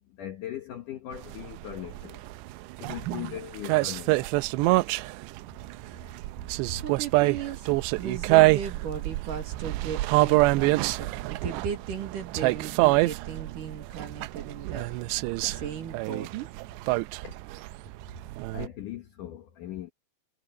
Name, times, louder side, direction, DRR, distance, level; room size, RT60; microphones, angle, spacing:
voice 1, 0.0-2.2 2.8-4.3 17.2-17.4 18.5-19.9, left 12 dB, 65° left, 2.1 m, -39 dB
sound 1, 1.1-18.7, right 21 dB, 85° right, 2.7 m, -26 dB
voice 2, 3.0-3.4 5.9-6.3 6.7-14.9 15.4-16.5, right 7 dB, 55° right, 3.2 m, -37 dB
omnidirectional pair, 5.2 m